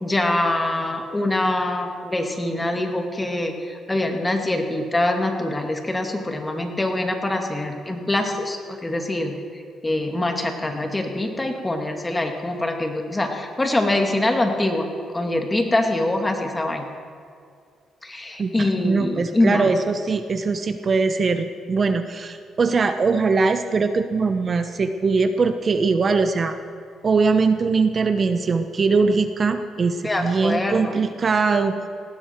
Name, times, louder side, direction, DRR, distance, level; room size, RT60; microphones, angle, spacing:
voice 1, 0.0-9.3 9.8-14.9 15.1-16.9 18.0-19.7 30.0-30.9, left 1 dB, 15° left, 3 dB, 2.2 m, -24 dB
voice 2, 18.4-26.6 27.0-31.7, right 4 dB, 40° right, 9 dB, 0.9 m, -21 dB
19.0 x 16.0 x 4.6 m, 2.3 s
cardioid pair, 90°, 0 cm